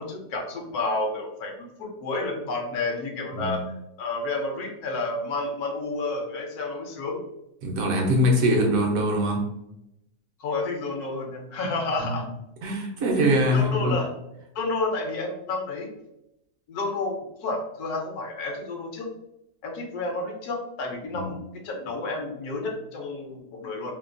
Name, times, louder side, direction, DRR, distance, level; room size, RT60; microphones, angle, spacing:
voice 1, 0.0-3.6 4.0-7.2 10.4-12.3 13.1-14.1 14.5-15.9 16.7-19.1 19.6-24.0, left 3 dB, 75° left, 2 dB, 1.0 m, -30 dB
voice 2, 7.6-9.5 12.0-12.1 12.6-14.0 21.1-21.3, equal, 70° right, 1 dB, 0.9 m, -23 dB
2.8 x 2.2 x 2.4 m, 0.85 s
omnidirectional pair, 1.7 m